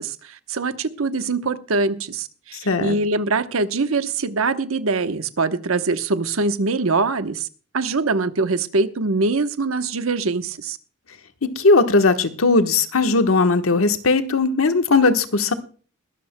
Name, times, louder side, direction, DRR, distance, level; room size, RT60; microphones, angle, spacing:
voice 1, 0.0-7.5 7.7-10.8, right 3 dB, 90° right, 10 dB, 1.0 m, -23 dB
voice 2, 2.6-3.0 11.6-15.5, left 3 dB, 85° left, 8 dB, 1.2 m, -18 dB
21.5 x 13.0 x 2.2 m, 0.40 s
head